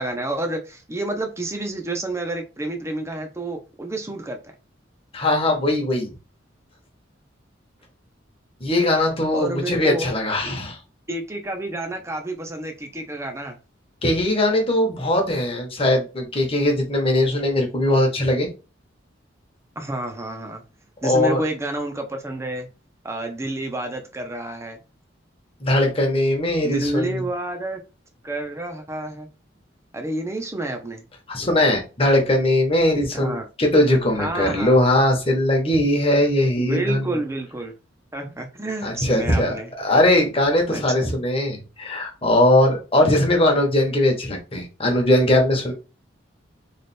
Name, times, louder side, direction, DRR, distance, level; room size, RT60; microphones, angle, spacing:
voice 1, 0.0-4.4 9.3-10.1 10.4-10.5 11.1-13.6 19.8-20.6 21.0-22.7 23.0-24.8 26.6-27.8 28.2-29.3 29.9-31.0 33.1-33.5 34.2-34.9 36.6-37.7 38.1-39.7 40.7-41.2, right 2 dB, 15° right, 0.7 m, -29 dB
voice 2, 5.1-6.1 8.6-10.8 14.0-18.5 21.0-21.4 25.6-27.2 31.3-37.1 38.8-45.7, left 1 dB, 30° left, 1.1 m, -20 dB
3.3 x 2.4 x 4.2 m
head